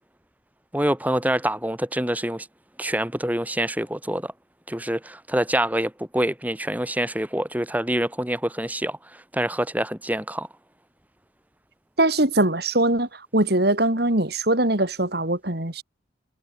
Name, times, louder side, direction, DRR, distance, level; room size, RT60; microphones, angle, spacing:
voice 1, 0.7-2.5 2.8-4.3 4.7-10.5, right 1 dB, 10° right, 3.6 m, -26 dB
voice 2, 12.0-15.8, right 1 dB, 55° right, 3.1 m, -22 dB
head